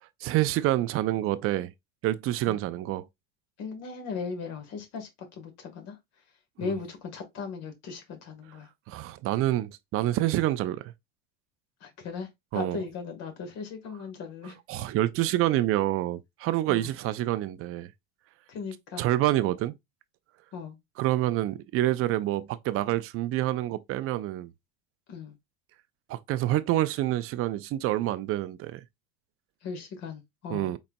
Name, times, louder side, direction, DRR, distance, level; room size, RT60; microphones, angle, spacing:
voice 1, 0.2-1.7 2.0-3.1 6.6-6.7 8.9-10.9 12.5-12.8 14.7-17.9 19.0-19.7 21.0-24.5 26.1-28.8 30.5-30.8, right 15 dB, 45° right, 0.5 m, -27 dB
voice 2, 3.6-6.0 6.6-8.7 11.8-14.6 16.7-16.9 18.5-19.0 20.5-20.8 25.1-25.4 29.6-30.7, left 5 dB, 55° left, 1.6 m, -38 dB
4.1 x 3.9 x 2.2 m
supercardioid pair, 105°, 31 cm